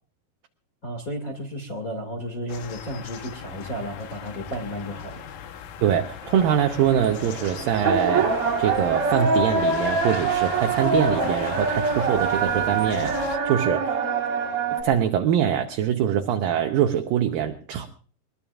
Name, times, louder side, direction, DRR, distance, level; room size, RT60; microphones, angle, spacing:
voice 1, 0.8-5.2, equal, 30° left, 3 dB, 1.8 m, -33 dB
sound 1, 2.5-13.4, left 8 dB, 65° left, 2.4 m, -38 dB
voice 2, 5.8-14.0 14.8-17.9, right 9 dB, 70° right, 5 dB, 2.4 m, -23 dB
sound 2, 6.2-14.8, right 4 dB, 40° right, 2.7 m, -25 dB
22.0 x 21.5 x 2.4 m, 0.41 s
omnidirectional pair, 4.7 m